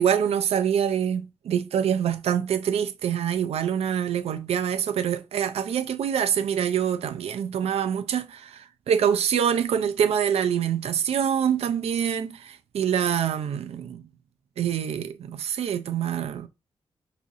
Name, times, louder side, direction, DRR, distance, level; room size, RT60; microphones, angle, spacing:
voice 1, 0.0-14.0 14.6-16.5, right 8 dB, 85° right, 0.4 m, -25 dB
4.9 x 2.5 x 2.7 m
wide cardioid pair, 125°, 10 cm